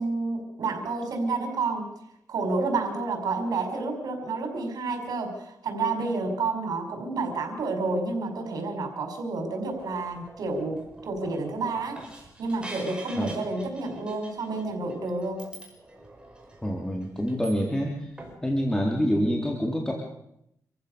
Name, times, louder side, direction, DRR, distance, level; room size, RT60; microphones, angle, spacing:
voice 1, 0.0-1.8 2.3-15.4, right 3 dB, 85° right, 4 dB, 5.6 m, -30 dB
sound 1, 9.6-17.9 18.2-18.4, right 2 dB, 15° right, 5.6 m, -46 dB
voice 2, 16.6-18.1 18.4-19.9, equal, 10° left, 0 dB, 3.5 m, -26 dB
27.5 x 15.0 x 6.8 m, 0.79 s
wide cardioid pair, 115°, 7 cm